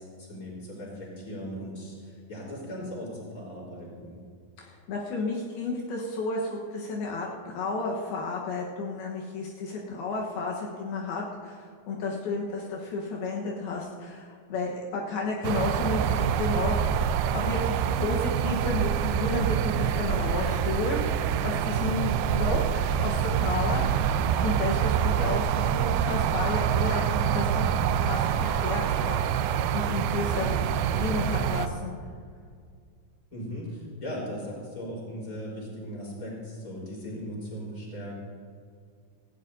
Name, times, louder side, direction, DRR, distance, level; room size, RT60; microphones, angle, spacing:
voice 1, 0.0-4.2 15.9-16.2 30.3-30.6 33.3-38.2, equal, 20° left, -4 dB, 4.3 m, -38 dB
voice 2, 4.6-16.9 17.3-27.8 28.0-29.2 29.7-30.6 30.9-31.9, left 3 dB, 75° left, -2 dB, 3.1 m, -32 dB
sound 1, 15.4-31.7, right 8 dB, 80° right, 2.5 m, -26 dB
18.5 x 15.5 x 2.7 m, 2.1 s
omnidirectional pair, 4.5 m